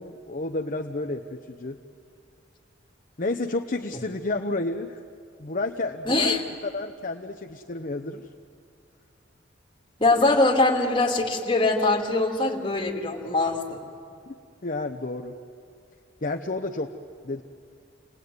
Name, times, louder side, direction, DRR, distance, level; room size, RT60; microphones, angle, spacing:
voice 1, 0.0-1.8 3.2-5.0 5.4-8.2 14.3-14.4 14.6-15.3 16.2-16.9 17.2-17.4, left 2 dB, 45° left, 4 dB, 0.9 m, -31 dB
voice 2, 6.1-6.4 10.0-13.8, left 2 dB, 25° left, 0 dB, 2.9 m, -22 dB
29.5 x 20.0 x 9.5 m, 2.4 s
head